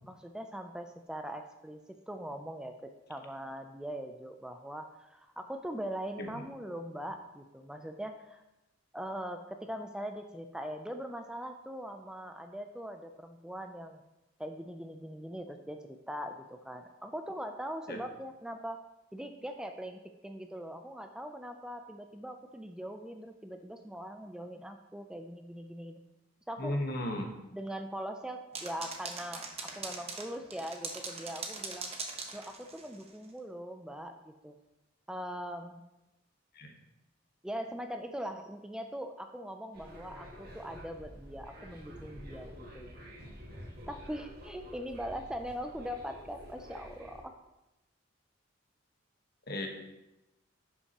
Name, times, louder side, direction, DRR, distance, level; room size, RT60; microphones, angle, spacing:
voice 1, 0.1-1.8 2.1-8.4 8.9-14.0 14.4-18.8 19.1-26.0 26.5-26.8 27.5-31.9 32.3-34.6 35.1-35.8 37.4-43.0 43.9-47.4, equal, 5° right, 5 dB, 0.3 m, -41 dB
voice 2, 26.6-27.3 36.5-36.7 49.5-49.7, left 1 dB, 55° left, 3 dB, 1.2 m, -34 dB
sound 1, 28.5-33.1, right 4 dB, 30° right, 1.0 m, -41 dB
sound 2, 39.7-47.2, equal, 55° right, 1.7 m, -49 dB
11.0 x 5.7 x 2.9 m, 0.94 s
head